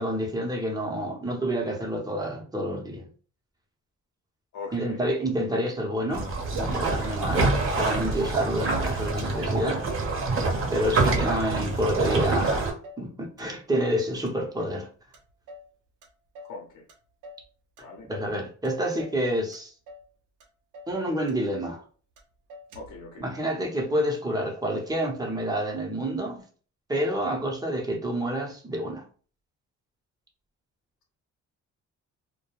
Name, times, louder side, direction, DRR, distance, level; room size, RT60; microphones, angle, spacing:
voice 1, 0.0-3.1 4.7-9.9 10.7-14.9 18.1-19.7 20.9-21.8 23.2-26.4 26.9-29.1, equal, 15° right, 0.8 m, -28 dB
voice 2, 4.5-5.1 10.9-11.3 16.4-16.8 17.8-18.1 22.7-23.3, left 4 dB, 70° left, 0.8 m, -41 dB
sound 1, 6.1-12.7, right 3 dB, 45° right, 0.8 m, -26 dB
Motor vehicle (road), 6.1-6.8 7.3-7.4 7.6-8.7 9.0-9.6 9.9-10.5 10.7-12.2 12.5-13.1 13.4-14.0 14.3-14.8 15.1-15.7 16.0-16.6 16.9-17.5 17.8-18.4 18.6-19.2 19.5-20.1 20.4-20.5 20.7-21.0 21.3-21.9 22.2-22.3 22.5-23.0, left 1 dB, 80° right, 0.7 m, -46 dB
2.2 x 2.2 x 2.9 m
cardioid pair, 90°, 30 cm